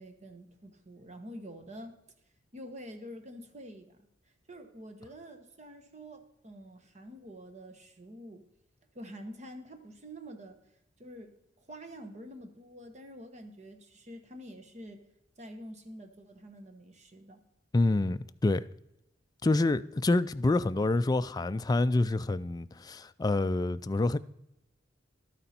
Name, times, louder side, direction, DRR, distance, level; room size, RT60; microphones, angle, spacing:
voice 1, 0.0-2.0 2.5-4.1 4.5-8.5 8.9-10.6 11.0-15.1 15.4-17.4, equal, 40° right, 1.2 m, -47 dB
voice 2, 17.7-18.7 19.4-24.2, left 2 dB, 20° left, 0.3 m, -27 dB
12.0 x 9.2 x 4.3 m
head